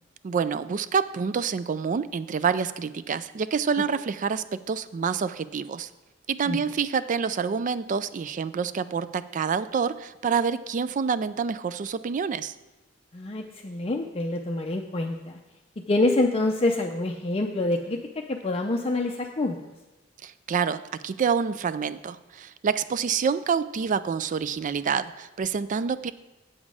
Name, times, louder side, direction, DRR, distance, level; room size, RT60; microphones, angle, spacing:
voice 1, 0.2-5.9 6.3-12.5 20.2-26.1, right 6 dB, 40° right, 15 dB, 0.3 m, -27 dB
voice 2, 13.1-15.4 15.9-18.0 18.3-19.6, left 2 dB, 30° left, 2 dB, 0.5 m, -26 dB
8.4 x 7.3 x 4.9 m, 1.1 s
head